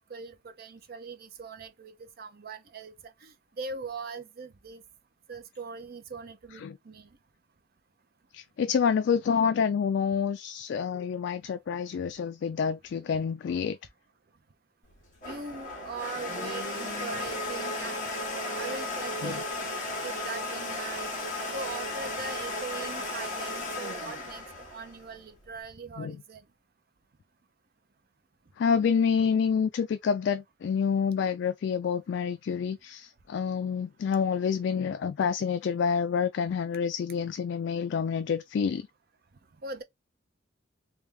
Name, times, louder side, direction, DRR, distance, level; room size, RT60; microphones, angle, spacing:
voice 1, 0.0-4.8 5.3-7.1 15.2-19.4 19.8-26.4 39.6-39.8, right 4 dB, 50° right, 0.6 m, -41 dB
voice 2, 8.3-13.8 19.2-19.4 26.0-26.2 28.6-38.8, left 6 dB, 60° left, 0.3 m, -28 dB
Domestic sounds home sounds, 14.9-25.6, left 2 dB, 40° left, 1.5 m, -35 dB
3.4 x 2.6 x 3.2 m
head